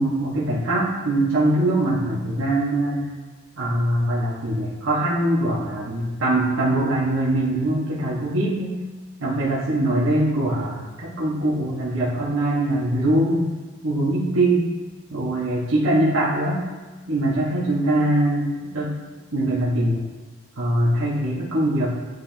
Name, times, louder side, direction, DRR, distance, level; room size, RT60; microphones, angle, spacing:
voice 1, 0.0-3.1 3.6-8.8 9.2-13.5 13.8-14.7 15.1-16.7 17.1-18.9 19.3-20.0 20.6-22.0, right 1 dB, 85° right, -7 dB, 1.3 m, -22 dB
9.5 x 4.9 x 2.8 m, 1.3 s
head